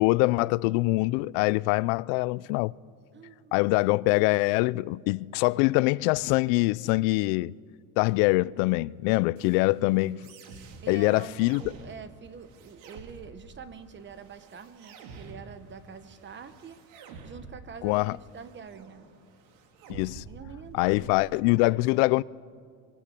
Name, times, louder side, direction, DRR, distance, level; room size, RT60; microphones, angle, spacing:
voice 1, 0.0-2.7 3.5-7.6 8.0-10.2 10.9-11.6 17.8-18.2 19.9-20.2 20.7-22.2, left 22 dB, 85° left, 0.6 m, -24 dB
voice 2, 3.1-3.6 10.8-16.8 17.2-19.1 20.3-21.6, right 6 dB, 25° right, 1.0 m, -45 dB
sound 1, 9.4-21.4, right 4 dB, 80° right, 3.1 m, -49 dB
23.5 x 20.5 x 8.4 m
cardioid pair, 150°, 42 cm